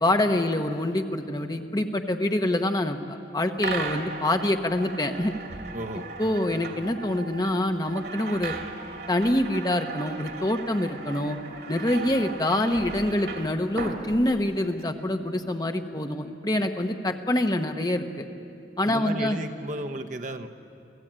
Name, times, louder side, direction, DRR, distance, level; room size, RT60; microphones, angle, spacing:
voice 1, 0.0-5.3 6.2-8.5 9.1-11.4 11.7-18.3 18.8-19.4, left 1 dB, 20° left, 6 dB, 1.0 m, -26 dB
sound 1, 3.6-14.8, right 4 dB, 65° right, 2.5 m, -37 dB
voice 2, 5.7-6.4 18.8-20.5, right 1 dB, 45° right, 4 dB, 1.0 m, -34 dB
28.5 x 16.0 x 8.9 m, 2.6 s
head